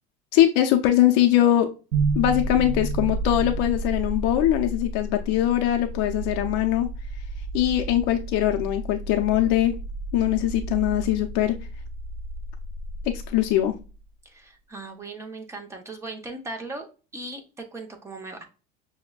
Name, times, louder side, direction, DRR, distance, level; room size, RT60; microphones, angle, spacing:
voice 1, 0.3-1.7 2.1-6.9 7.5-9.8 10.1-11.6 13.1-13.8, left 13 dB, 60° left, 4 dB, 0.5 m, -22 dB
sound 1, 1.9-14.0, right 2 dB, 85° right, 0.5 m, -31 dB
voice 2, 14.2-16.9 17.1-18.4, right 2 dB, 15° right, 4 dB, 0.7 m, -38 dB
5.8 x 2.1 x 2.2 m, 0.33 s
supercardioid pair, 140°, 21 cm